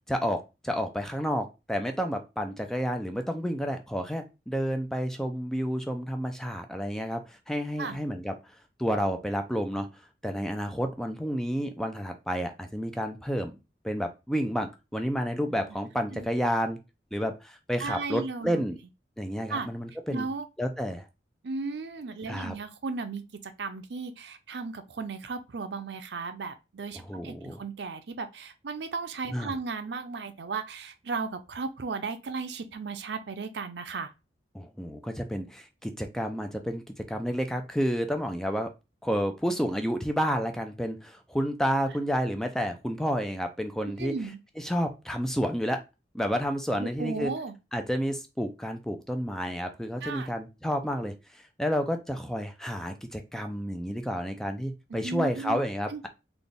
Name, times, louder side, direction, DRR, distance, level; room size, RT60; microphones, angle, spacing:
voice 1, 0.1-8.3 8.8-9.9 10.2-13.6 13.8-16.8 17.1-18.8 19.2-20.3 20.6-21.1 22.3-22.5 27.1-27.6 29.3-29.5 34.5-38.7 39.0-44.1 44.6-45.8 46.1-47.3 47.7-56.1, equal, 5° left, 0.4 m, -30 dB
voice 2, 17.8-18.6 19.5-19.7 20.1-20.5 21.4-34.1 44.0-44.4 46.8-47.5 50.0-50.3 55.0-55.6 55.9-56.0, right 4 dB, 75° right, 0.5 m, -35 dB
4.0 x 2.3 x 3.4 m
head